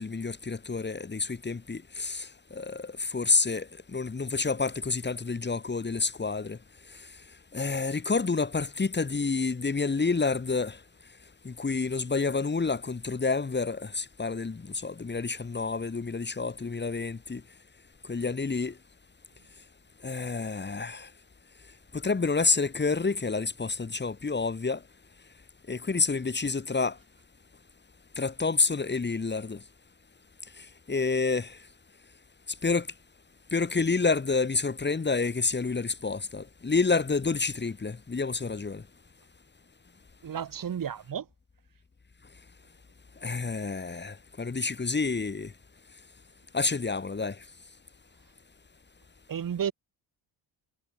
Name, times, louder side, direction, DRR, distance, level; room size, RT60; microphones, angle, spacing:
voice 1, 0.0-6.6 7.5-10.8 11.4-17.4 18.1-18.8 20.0-21.1 21.9-24.8 25.7-27.0 28.2-29.6 30.6-31.6 32.6-32.9 33.5-38.8 43.2-45.5 46.5-47.4, left 4 dB, 25° left, 2.7 m, -29 dB
voice 2, 40.2-41.3 49.3-49.7, right 8 dB, 50° right, 3.1 m, -32 dB
cardioid pair, 90°, 43 cm